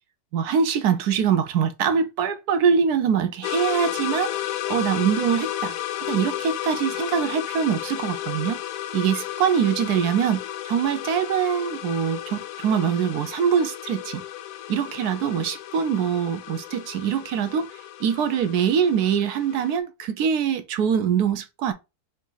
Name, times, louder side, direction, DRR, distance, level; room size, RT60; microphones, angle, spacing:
voice 1, 0.3-4.4 4.7-5.7 6.1-8.6 8.9-14.2 14.7-17.7 18.0-21.7, right 7 dB, 70° right, 1.1 m, -23 dB
sound 1, 3.4-19.8, left 12 dB, 80° left, 1.1 m, -33 dB
5.1 x 2.6 x 3.9 m
omnidirectional pair, 1.8 m